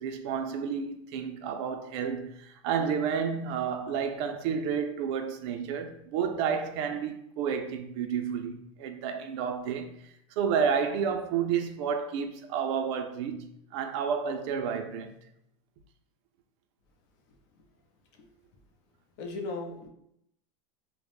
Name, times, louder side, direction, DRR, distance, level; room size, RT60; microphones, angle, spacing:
voice 1, 0.0-10.0 10.4-15.1, right 7 dB, 60° right, 0.4 m, -31 dB
voice 2, 17.3-17.7 18.1-18.3 19.2-19.9, left 3 dB, 55° left, 0.6 m, -38 dB
2.2 x 2.0 x 2.9 m
hypercardioid pair, 110°, 17 cm